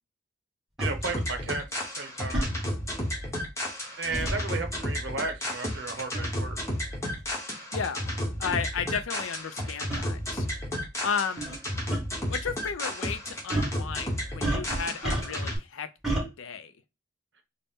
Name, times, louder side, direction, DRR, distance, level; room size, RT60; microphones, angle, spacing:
sound 1, 0.8-15.6, equal, 15° left, 0.9 m, -32 dB
sound 2, 0.8-0.9 2.3-2.5 4.1-4.4 6.1-6.3 7.2-7.3 8.1-8.2 8.4-8.6 9.9-10.0 11.4-11.6 11.9-12.0 13.5-13.8 14.4-15.5 16.0-16.3, right 1 dB, ahead, 1.4 m, -30 dB
voice 1, 0.8-1.6 2.0-2.5 4.0-6.6, right 3 dB, 60° right, 0.8 m, -34 dB
voice 2, 7.7-8.1 8.4-10.5 11.0-11.5 12.3-16.7, left 6 dB, 80° left, 0.5 m, -34 dB
4.0 x 2.1 x 3.5 m
head